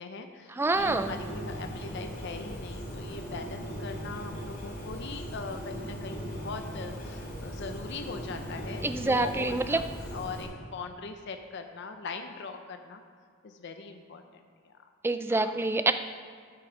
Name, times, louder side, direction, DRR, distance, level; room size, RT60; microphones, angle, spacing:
voice 1, 0.0-9.8 10.1-13.0 13.4-14.8 15.3-15.5, left 4 dB, 55° left, 6 dB, 0.5 m, -41 dB
voice 2, 0.5-1.2 8.8-9.8 15.0-15.9, right 2 dB, 10° right, 9 dB, 0.3 m, -26 dB
Bird, 0.7-10.4, equal, 40° left, 2.6 m, -39 dB
11.5 x 6.0 x 5.0 m, 2.1 s
head